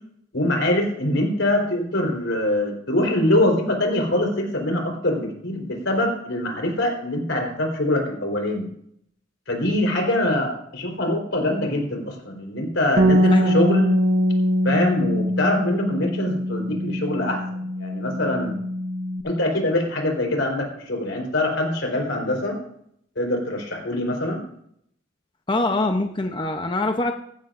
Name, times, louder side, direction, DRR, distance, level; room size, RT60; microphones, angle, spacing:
voice 1, 0.3-8.7 9.5-13.9 14.6-18.6 19.2-22.6 23.2-24.4, left 1 dB, 90° left, 1 dB, 4.1 m, -24 dB
Bass guitar, 13.0-19.2, equal, 55° right, 1.3 m, -22 dB
voice 2, 25.5-27.1, left 2 dB, 25° left, 5 dB, 0.7 m, -23 dB
17.0 x 15.0 x 2.6 m, 0.69 s
head